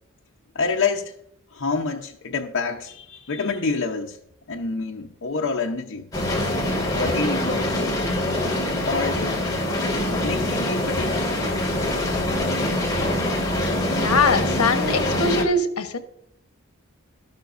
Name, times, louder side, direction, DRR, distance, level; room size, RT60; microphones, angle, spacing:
voice 1, 0.5-1.1 1.5-4.2 4.5-6.1 6.9-7.8 8.9-9.4 10.2-11.2, left 4 dB, 60° left, 0.8 m, -27 dB
sound 1, 6.1-15.4, left 1 dB, 15° left, 2.1 m, -24 dB
voice 2, 13.9-16.0, left 3 dB, 80° left, 1.1 m, -22 dB
12.5 x 12.0 x 2.6 m
head